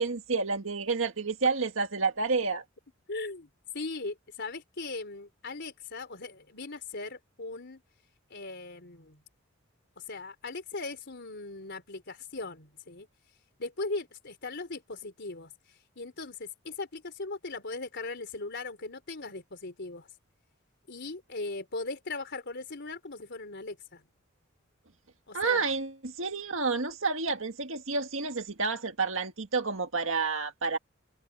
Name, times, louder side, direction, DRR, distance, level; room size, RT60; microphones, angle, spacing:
voice 1, 0.0-2.6 25.3-30.8, right 4 dB, 70° right, 1.9 m, -29 dB
voice 2, 3.1-3.5 3.7-7.8 8.3-9.2 10.0-13.1 13.6-20.1 20.9-24.0 25.3-25.6, left 3 dB, 55° left, 4.1 m, -39 dB
head